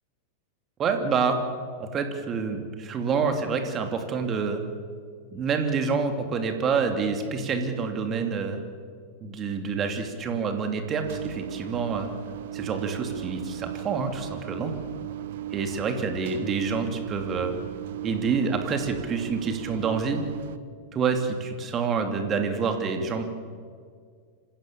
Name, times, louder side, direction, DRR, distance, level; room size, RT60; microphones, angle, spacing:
voice 1, 0.8-1.4 1.8-4.6 5.3-8.6 9.2-12.1 12.5-14.7 15.5-17.6 18.0-20.2 20.9-23.2, right 5 dB, 25° right, 6 dB, 2.7 m, -27 dB
sound 1, 11.0-20.6, right 12 dB, 55° right, 0.9 m, -37 dB
27.0 x 16.0 x 7.2 m, 2.1 s
figure-of-eight pair, 90°, 0 cm